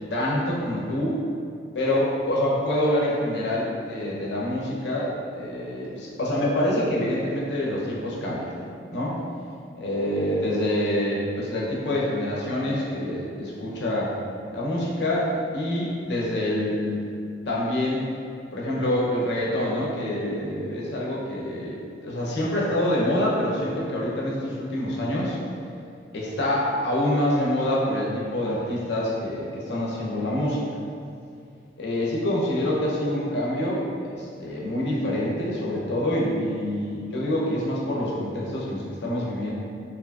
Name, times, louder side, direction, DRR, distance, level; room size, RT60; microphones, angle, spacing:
voice 1, 0.1-1.2 1.7-8.5 8.9-9.2 9.8-14.2 14.5-17.0 17.5-18.0 18.5-21.8 22.0-25.4 26.1-30.6 31.8-39.5, left 1 dB, 65° left, -4 dB, 0.5 m, -26 dB
2.8 x 2.4 x 2.2 m, 2.4 s
head